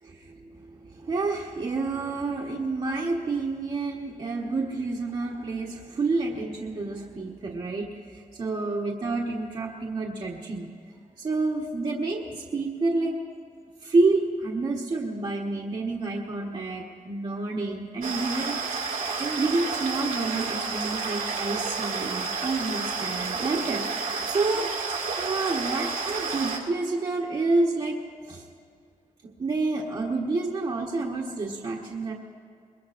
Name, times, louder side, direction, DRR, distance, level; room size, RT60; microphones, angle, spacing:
voice 1, 0.0-10.7 11.2-13.1 13.8-18.9 19.2-24.7 25.2-28.0 28.2-28.4 29.4-32.1, right 3 dB, 40° right, -4 dB, 1.3 m, -29 dB
sound 1, 18.0-26.6, right 4 dB, 75° right, 1.8 m, -30 dB
23.5 x 21.5 x 2.6 m, 2.2 s
wide cardioid pair, 165°, 14 cm